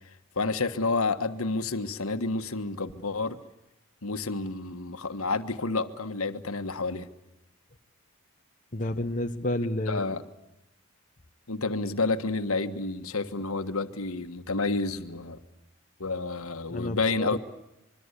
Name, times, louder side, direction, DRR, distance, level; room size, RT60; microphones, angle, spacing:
voice 1, 0.3-3.4 4.0-7.1 9.9-10.2 11.5-15.4 16.0-17.4, left 3 dB, 80° left, 9 dB, 1.5 m, -29 dB
voice 2, 8.7-10.3 16.7-17.4, left 1 dB, 35° left, 6 dB, 0.9 m, -30 dB
25.5 x 23.0 x 8.3 m, 0.91 s
head